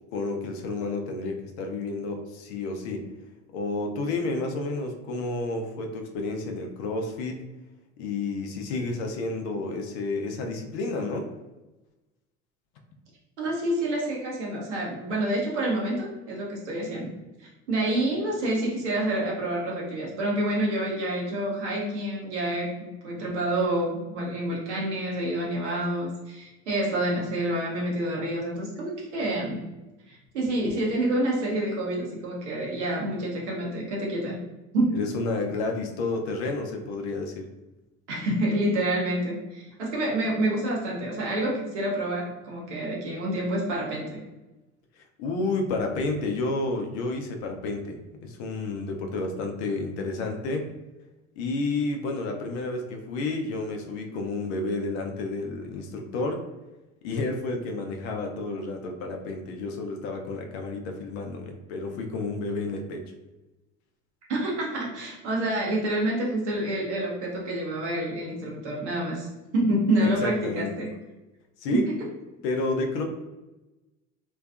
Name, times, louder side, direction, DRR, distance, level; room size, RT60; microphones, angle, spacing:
voice 1, 0.1-3.1 3.5-7.4 8.0-11.3 34.9-37.5 45.0-48.0 48.2-50.6 51.4-56.4 57.0-63.0 70.0-70.7 71.6-71.8 72.4-73.0, left 3 dB, 70° left, 3 dB, 0.5 m, -30 dB
voice 2, 13.4-17.1 17.4-29.6 30.1-34.4 34.7-35.0 38.1-44.2 64.3-69.3 69.5-70.9 71.7-72.0, right 1 dB, 90° right, -3 dB, 0.7 m, -28 dB
2.5 x 2.3 x 2.3 m, 1.1 s
hypercardioid pair, 70°, 34 cm